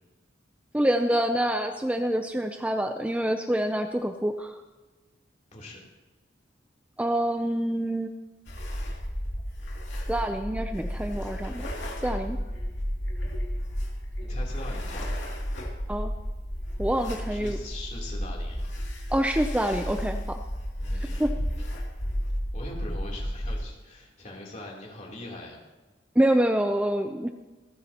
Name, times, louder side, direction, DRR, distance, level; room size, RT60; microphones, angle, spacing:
voice 1, 0.7-4.6 7.0-8.1 10.1-11.7 12.0-12.4 15.9-16.1 16.8-17.6 19.1-20.4 21.2-21.3 26.2-27.3, right 1 dB, 5° right, 6 dB, 0.4 m, -26 dB
voice 2, 5.5-5.8 14.2-15.1 17.0-18.8 20.8-21.2 22.5-25.6, left 1 dB, 40° left, -3 dB, 3.2 m, -42 dB
sound 1, 8.5-23.6, equal, 75° left, 2.5 m, -32 dB
26.0 x 9.4 x 2.9 m, 1.2 s
head